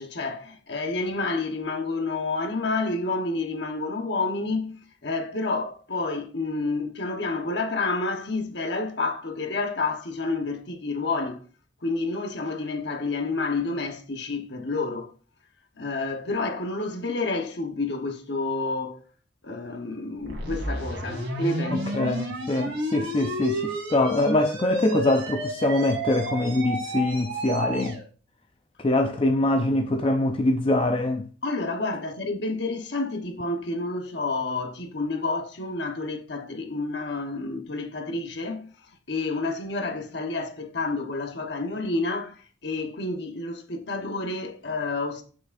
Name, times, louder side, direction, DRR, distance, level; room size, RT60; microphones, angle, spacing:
voice 1, 0.0-11.4 11.8-15.1 15.7-19.0 19.4-22.1 31.4-38.8 39.1-45.2, left 3 dB, 55° left, 1.1 m, -29 dB
sound 1, 20.2-28.0, right 1 dB, 85° right, 2.6 m, -31 dB
voice 2, 21.7-28.0 28.8-31.3, left 1 dB, 25° left, 0.4 m, -24 dB
8.5 x 6.2 x 2.5 m
head